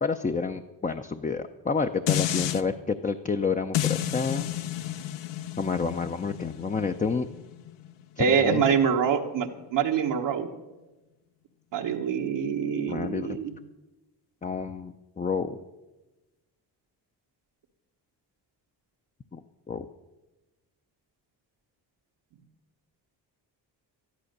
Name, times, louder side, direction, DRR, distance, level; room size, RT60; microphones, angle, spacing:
voice 1, 0.0-4.5 5.6-7.3 8.2-8.6 12.9-13.4 14.4-15.6 19.3-19.4 19.7-19.9, left 5 dB, 20° left, 6 dB, 0.5 m, -29 dB
sound 1, 2.1-2.6 3.7-8.9 9.3-9.4, left 12 dB, 90° left, 0.7 m, -31 dB
voice 2, 8.2-10.5 11.7-13.5, right 7 dB, 85° right, 0 dB, 1.3 m, -25 dB
12.5 x 11.5 x 6.6 m, 1.1 s
cardioid pair, 95°, 42 cm